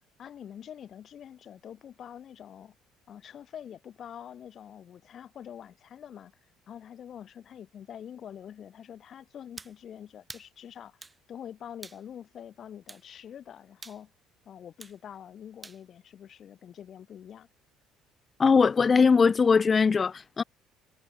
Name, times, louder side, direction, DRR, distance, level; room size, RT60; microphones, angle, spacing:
voice 1, 0.2-2.7 3.1-6.3 6.7-11.0 11.3-14.1 14.4-17.5, left 9 dB, 50° left, 1.0 m, -45 dB
sound 1, 9.6-9.8 10.3-10.5 11.0-11.2 11.8-12.0 12.9-13.1 13.8-14.0 14.8-15.0 15.6-15.8, right 3 dB, 20° right, 0.6 m, -46 dB
voice 2, 18.4-20.4, left 5 dB, 35° left, 0.4 m, -21 dB
hypercardioid pair, 55°, 0 cm